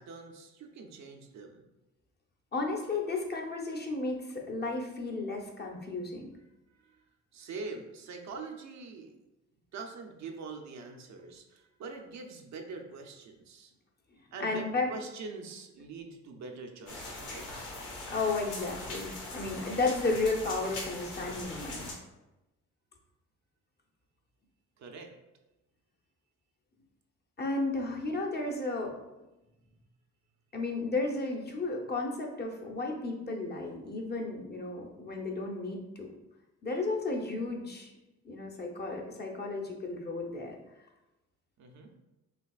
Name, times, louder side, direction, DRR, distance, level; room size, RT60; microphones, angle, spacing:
voice 1, 0.0-1.7 6.7-7.0 7.3-9.1 9.7-13.7 14.3-17.5 24.8-25.1 41.6-41.9, right 4 dB, 65° right, 3 dB, 0.7 m, -44 dB
voice 2, 2.5-6.3 14.4-14.9 18.1-21.9 27.4-28.9 30.5-36.1 36.6-37.9 38.2-40.6, left 3 dB, 35° left, 1 dB, 0.9 m, -33 dB
sound 1, 16.9-21.9, left 2 dB, 85° left, 1.3 m, -41 dB
5.8 x 2.9 x 2.4 m, 0.99 s
cardioid pair, 90°, 30 cm